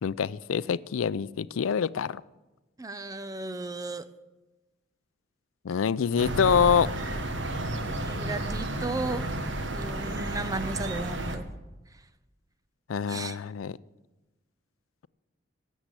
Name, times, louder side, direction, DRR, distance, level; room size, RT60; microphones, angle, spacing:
voice 1, 0.0-2.2 5.6-6.9 12.9-13.7, left 7 dB, 85° left, 18 dB, 0.4 m, -25 dB
voice 2, 2.8-4.1 8.0-9.3 9.7-11.5 13.1-13.4, right 2 dB, 15° right, 13 dB, 0.6 m, -35 dB
sound 1, 6.2-11.4, right 1 dB, 65° right, 1.3 m, -32 dB
17.5 x 7.3 x 8.3 m, 1.1 s
head